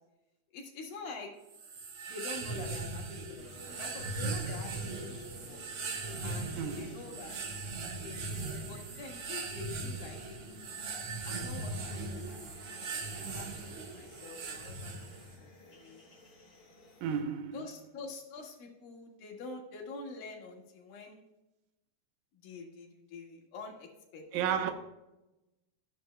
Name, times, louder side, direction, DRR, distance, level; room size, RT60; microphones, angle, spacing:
voice 1, 0.5-1.3 2.1-5.6 6.2-7.6 8.0-10.2 11.2-16.1 17.5-21.2 22.3-24.7, left 3 dB, 80° left, 3.5 m, -47 dB
sound 1, 1.5-15.4, right 3 dB, 60° right, 1.6 m, -39 dB
sound 2, 3.4-17.2, left 1 dB, 30° left, 2.2 m, -54 dB
voice 2, 6.6-6.9 17.0-17.6 24.3-24.7, right 8 dB, 80° right, 2.6 m, -32 dB
14.5 x 10.0 x 2.2 m
omnidirectional pair, 4.1 m